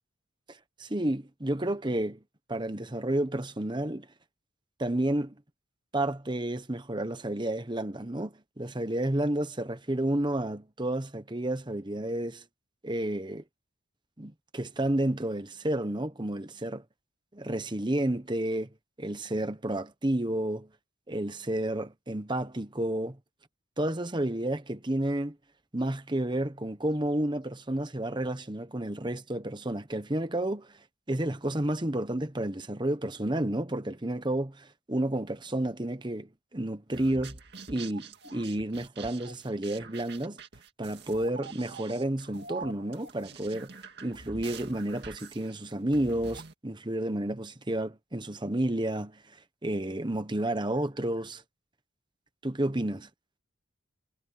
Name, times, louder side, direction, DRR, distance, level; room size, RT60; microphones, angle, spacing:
voice 1, 0.5-2.2 2.5-4.1 4.8-5.4 5.9-12.4 12.8-13.4 14.2-16.8 17.3-18.7 19.0-20.7 21.1-23.2 23.8-25.4 25.7-30.7 31.1-37.4 37.7-40.4 40.8-43.7 44.0-49.4 49.6-51.4 52.4-53.1, right 1 dB, 20° right, 1.1 m, -31 dB
sound 1, 36.9-46.5, right 5 dB, 55° right, 2.2 m, -45 dB
head